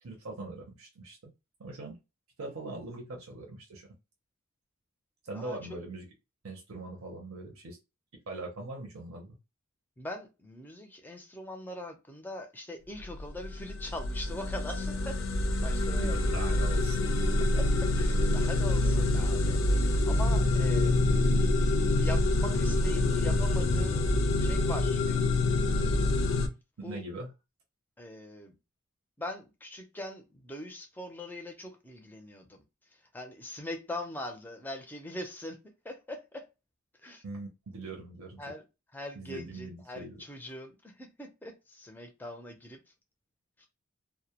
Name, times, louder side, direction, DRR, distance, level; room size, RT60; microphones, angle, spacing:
voice 1, 0.0-1.3 1.6-2.0 2.4-3.9 5.2-6.1 6.4-7.8 8.3-9.4 15.6-17.0 26.8-27.3 37.2-38.4 39.1-40.2, right 2 dB, 85° right, 0.6 m, -41 dB
voice 2, 10.0-15.2 15.6-16.2 17.4-21.0 22.0-24.1 24.4-25.3 26.8-27.0 28.0-28.6 29.2-32.6 33.1-35.6 35.8-36.5 37.0-37.2 38.4-38.6 38.9-42.8 43.6-43.7, left 1 dB, 10° left, 0.4 m, -41 dB
sound 1, 13.0-26.5, left 2 dB, 70° left, 0.4 m, -26 dB
2.1 x 2.0 x 2.8 m
head